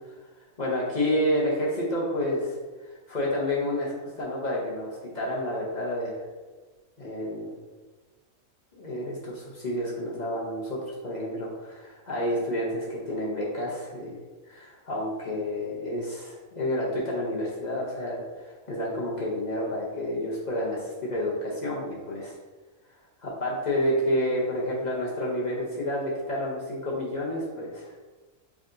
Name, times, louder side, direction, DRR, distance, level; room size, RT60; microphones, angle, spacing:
voice 1, 0.6-2.6 2.9-6.2 7.0-7.6 8.8-14.2 14.4-22.3 23.2-27.9, left 1 dB, 40° left, -5 dB, 0.7 m, -29 dB
4.1 x 3.4 x 2.5 m, 1.3 s
omnidirectional pair, 1.4 m